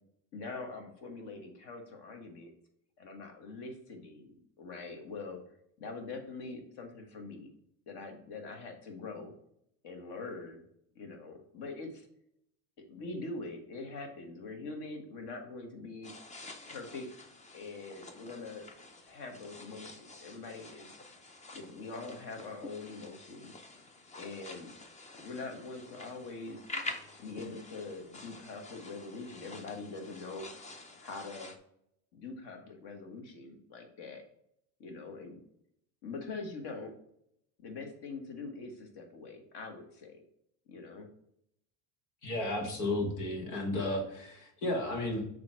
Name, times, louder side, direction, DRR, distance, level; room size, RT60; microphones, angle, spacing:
voice 1, 0.3-2.5 3.0-5.4 5.8-7.5 7.9-9.3 9.8-10.6 10.9-12.1 12.9-16.1 16.7-17.1 17.5-18.7 19.0-20.9 21.5-23.5 24.2-24.7 25.2-26.6 27.2-31.5 32.1-34.2 34.8-35.4 36.0-36.9 37.6-40.2 40.7-41.1, left 3 dB, 55° left, 4 dB, 1.6 m, -43 dB
sound 1, 16.0-31.6, left 2 dB, 15° left, 0.4 m, -48 dB
voice 2, 42.2-45.2, left 1 dB, 85° left, 2 dB, 1.8 m, -33 dB
6.9 x 3.2 x 4.4 m, 0.74 s
supercardioid pair, 125°, 48 cm